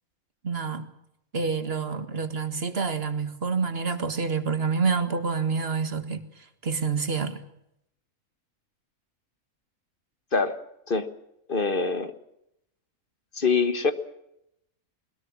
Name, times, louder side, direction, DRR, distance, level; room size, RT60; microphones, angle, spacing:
voice 1, 0.4-0.9 1.3-7.4, right 5 dB, 45° right, 1.9 m, -28 dB
voice 2, 11.5-12.1 13.3-13.9, left 4 dB, 40° left, 1.5 m, -24 dB
21.0 x 21.0 x 7.4 m
omnidirectional pair, 1.5 m